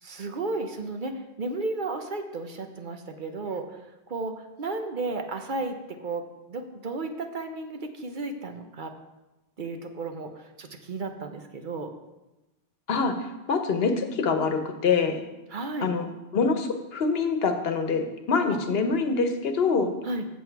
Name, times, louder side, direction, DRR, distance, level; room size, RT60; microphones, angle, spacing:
voice 1, 0.0-8.9 9.6-11.9 15.5-15.9 18.5-18.6 20.0-20.3, right 3 dB, 55° right, 6 dB, 0.9 m, -34 dB
voice 2, 12.9-15.2 15.8-16.1 16.3-19.9, left 4 dB, 75° left, 7 dB, 1.1 m, -25 dB
7.8 x 7.2 x 4.5 m, 1.0 s
omnidirectional pair, 1.0 m